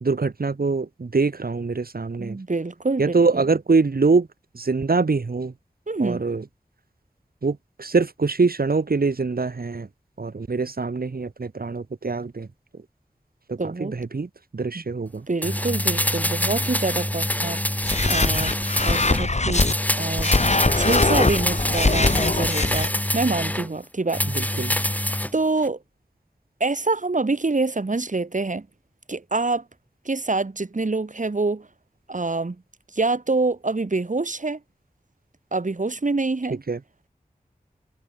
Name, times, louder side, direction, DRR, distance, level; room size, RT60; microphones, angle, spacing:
voice 1, 0.0-2.4 3.0-4.3 4.5-5.5 6.0-6.4 7.4-9.9 10.2-12.5 12.7-12.8 13.5-15.3 24.3-24.8 36.5-36.8, right 4 dB, 85° right, 2.6 m, -24 dB
voice 2, 2.2-3.2 5.9-6.2 13.6-13.9 15.3-17.8 18.1-18.5 18.8-19.7 20.0-20.3 20.7-24.2 25.3-25.8 26.6-28.7 29.1-29.6 30.0-31.7 32.1-32.6 32.9-34.6 35.5-36.6, right 3 dB, 55° right, 2.5 m, -26 dB
sound 1, 15.4-19.2 19.5-23.7 24.1-25.3 25.6-25.7, left 1 dB, 10° left, 1.5 m, -25 dB
sound 2, 17.8-19.7 20.2-22.9, left 2 dB, 50° left, 2.2 m, -22 dB
wide cardioid pair, 45°, 15 cm